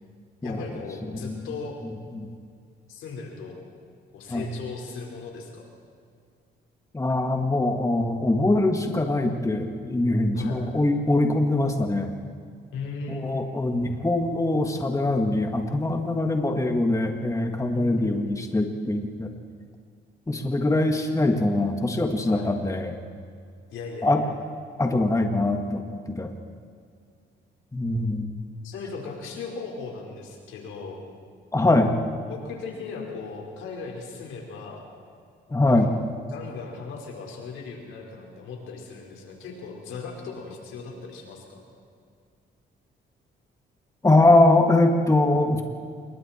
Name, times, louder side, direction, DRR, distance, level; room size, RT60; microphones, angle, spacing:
voice 1, 0.4-1.8 2.9-3.6 4.1-5.7 10.3-10.6 12.7-13.3 17.7-18.4 22.2-22.5 23.7-24.3 28.6-31.0 32.3-34.9 35.7-35.9 36.3-41.6, left 4 dB, 85° left, 0 dB, 4.7 m, -37 dB
voice 2, 6.9-12.1 13.1-19.3 20.3-23.0 24.0-24.2 24.8-26.3 27.7-28.3 31.5-31.9 35.5-35.9 44.0-45.6, left 2 dB, 15° left, 4 dB, 1.8 m, -22 dB
27.0 x 22.5 x 4.5 m, 2.2 s
cardioid pair, 90°, 20 cm